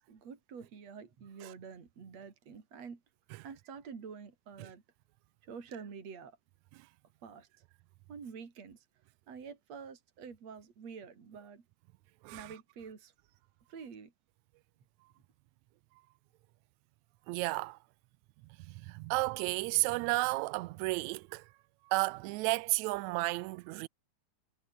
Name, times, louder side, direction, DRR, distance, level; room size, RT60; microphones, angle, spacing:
voice 1, 0.0-3.0 3.4-4.8 5.4-6.4 7.2-7.6 8.1-8.9 9.3-11.6 12.3-13.1 13.7-14.1, right 6 dB, 55° right, 4.5 m, -48 dB
voice 2, 17.3-17.8 18.6-21.5 21.9-23.9, right 23 dB, 80° right, 1.8 m, -32 dB
omnidirectional pair, 3.5 m